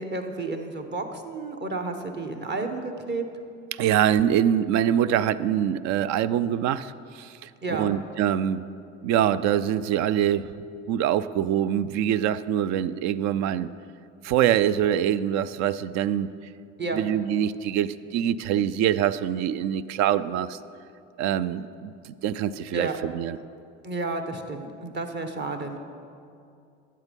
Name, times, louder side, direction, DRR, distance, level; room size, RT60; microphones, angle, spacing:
voice 1, 0.0-3.2 7.6-7.9 16.8-17.0 22.7-23.0 23.8-25.8, right 3 dB, 35° right, 5 dB, 1.3 m, -31 dB
voice 2, 3.7-8.6 9.0-10.5 10.9-13.7 14.2-16.3 16.9-20.6 21.2-23.4, right 10 dB, 60° right, 16 dB, 0.5 m, -24 dB
12.0 x 7.5 x 5.3 m, 2.4 s
hypercardioid pair, 80°, 32 cm